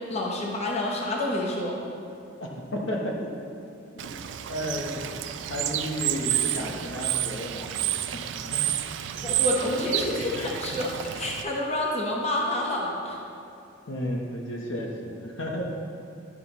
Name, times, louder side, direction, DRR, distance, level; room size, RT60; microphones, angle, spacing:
voice 1, 0.1-1.8 9.2-13.2, left 1 dB, 35° left, -2 dB, 1.0 m, -28 dB
voice 2, 2.4-3.3 4.5-5.1 5.5-7.9 8.5-8.6 13.9-15.7, equal, 75° left, -1 dB, 0.9 m, -32 dB
Bird / Water, 4.0-11.4, right 11 dB, 65° right, 0.3 m, -30 dB
11.0 x 5.5 x 3.0 m, 2.6 s
head